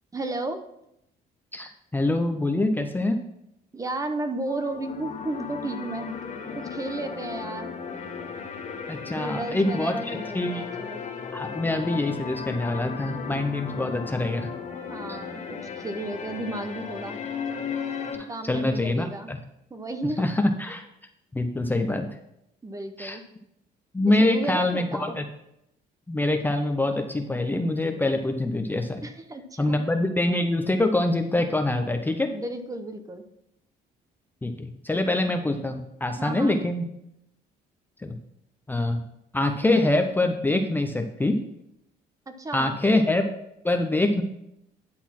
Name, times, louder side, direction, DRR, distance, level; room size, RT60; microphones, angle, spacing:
voice 1, 0.1-0.6 3.7-6.2 6.5-7.7 9.2-11.0 14.9-17.2 18.3-19.3 19.7-20.3 22.6-23.2 24.1-25.1 29.0-29.8 32.3-33.2 36.2-36.6 42.3-42.8, right 2 dB, 20° right, 8 dB, 0.8 m, -33 dB
voice 2, 1.5-3.2 8.9-10.7 11.3-14.5 15.1-15.2 18.1-19.4 20.2-20.9 21.3-22.1 23.0-23.2 23.9-25.2 26.1-29.0 29.6-32.3 34.4-36.8 38.0-38.2 38.7-39.0 39.3-41.4 42.5-43.3 43.6-44.2, left 2 dB, 10° left, 6 dB, 0.6 m, -25 dB
sound 1, 4.5-18.2, left 6 dB, 45° left, 1.7 m, -36 dB
10.5 x 4.1 x 5.9 m, 0.81 s
cardioid pair, 110°, 17 cm